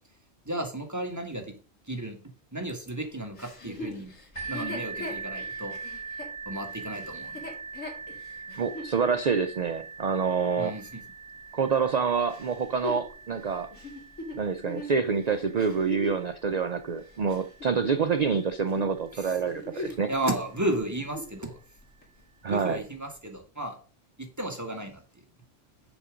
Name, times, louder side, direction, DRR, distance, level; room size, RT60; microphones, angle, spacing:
voice 1, 0.4-1.5 1.9-2.2 2.5-4.1 4.5-5.7 6.4-7.3 10.6-11.0 20.1-21.6 22.5-23.7 24.4-25.0, right 1 dB, 15° right, 3 dB, 1.7 m, -33 dB
Chuckle chortle, 3.4-8.9 9.5-9.6 12.3-16.3 16.9-18.4 18.6-18.9 19.4-20.1 20.4-20.5 20.9-21.4 22.0-22.1, left 2 dB, 90° left, 2.5 m, -40 dB
sound 1, 4.4-19.9 20.7-20.8 21.3-21.4, right 5 dB, 20° left, 4.8 m, -42 dB
voice 2, 8.5-10.8 11.5-13.7 14.3-20.1 22.4-22.9, right 5 dB, 55° right, 10 dB, 0.4 m, -27 dB
7.0 x 6.5 x 5.1 m, 0.38 s
omnidirectional pair, 1.3 m